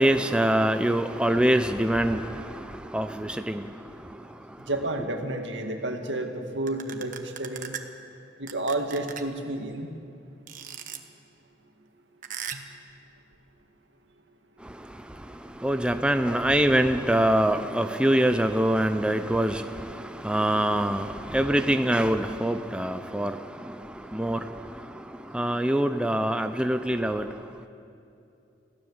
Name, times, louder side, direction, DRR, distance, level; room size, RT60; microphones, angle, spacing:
voice 1, 0.0-4.7 14.6-27.7, right 1 dB, 5° right, 0.6 m, -25 dB
voice 2, 4.7-7.7 8.4-9.9, right 2 dB, 85° right, 2.1 m, -30 dB
sound 1, 6.7-7.8 8.5-9.4 10.5-11.0 12.2-12.8, right 8 dB, 45° right, 1.3 m, -37 dB
26.0 x 16.0 x 7.2 m
head